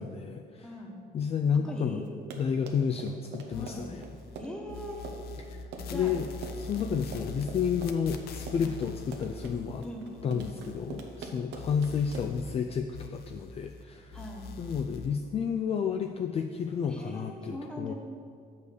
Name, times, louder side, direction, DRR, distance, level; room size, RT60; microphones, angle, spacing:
voice 1, 0.0-0.7 1.1-2.0 2.4-4.0 5.4-5.6 5.9-6.3 6.6-9.8 10.2-14.2 14.6-17.9, left 7 dB, 35° left, 5 dB, 0.4 m, -31 dB
voice 2, 0.6-1.0 1.6-2.1 3.5-3.9 4.4-5.0 5.9-6.2 6.7-7.1 8.6-8.7 9.8-10.4 14.1-14.5 16.9-17.9, equal, 5° left, 0 dB, 1.2 m, -41 dB
Run, 2.1-12.5, right 4 dB, 90° right, 0.9 m, -44 dB
sound 1, 3.5-4.4 4.7-11.3 11.5-13.8 14.1-15.1, left 4 dB, 70° left, 0.7 m, -43 dB
6.4 x 5.4 x 6.7 m, 2.3 s
cardioid pair, 110°, 17 cm